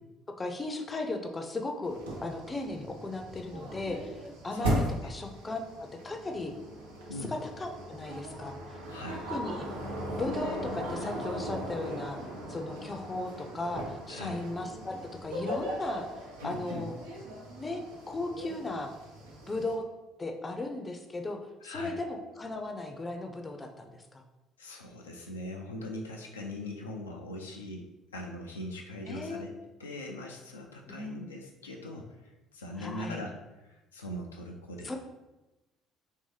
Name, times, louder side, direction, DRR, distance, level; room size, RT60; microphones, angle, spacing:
voice 1, 0.4-5.6 6.0-6.5 7.0-8.8 9.3-9.7 10.1-12.2 12.5-15.0 15.2-16.1 16.4-16.9 17.6-17.8 18.1-18.9 19.5-19.8 20.2-24.2 29.1-29.5 30.9-31.3 32.8-33.2 34.8-35.0, left 2 dB, 25° left, 4 dB, 0.5 m, -36 dB
sound 1, 1.8-19.8, equal, 80° right, 0.7 m, -38 dB
voice 2, 8.9-9.3 14.1-14.5 16.4-16.9 21.6-22.0 24.6-27.9 28.1-29.5 29.8-35.0, left 1 dB, 85° left, 0 dB, 0.3 m, -41 dB
3.3 x 2.7 x 3.3 m, 1.0 s
hypercardioid pair, 55°, 0 cm